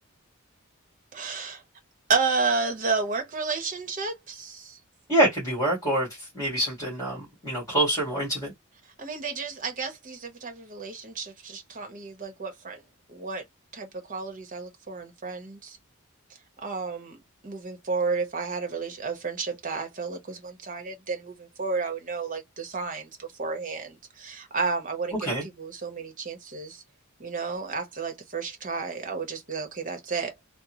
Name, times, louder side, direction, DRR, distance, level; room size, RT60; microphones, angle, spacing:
voice 1, 1.1-1.6 2.1-4.8 9.0-12.8 13.1-13.4 13.7-15.8 16.6-17.2 17.4-26.8 27.2-30.3, right 4 dB, 40° right, 1.0 m, -31 dB
voice 2, 5.1-8.5 25.2-25.4, right 1 dB, 15° left, 2.0 m, -26 dB
3.6 x 2.1 x 3.0 m
head